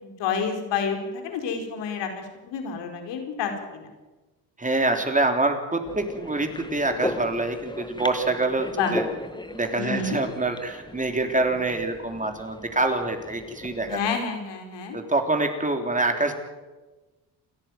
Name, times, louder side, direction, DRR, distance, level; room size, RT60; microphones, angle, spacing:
voice 1, 0.0-3.9 8.7-8.9 9.8-10.2 13.9-15.0, left 6 dB, 80° left, 4 dB, 4.7 m, -29 dB
voice 2, 4.6-9.1 9.5-14.2 14.9-16.3, right 2 dB, 20° right, 5 dB, 3.4 m, -26 dB
sound 1, 5.8-14.1, left 2 dB, 10° left, 1.8 m, -37 dB
28.5 x 11.0 x 9.2 m, 1.2 s
cardioid pair, 90°, 42 cm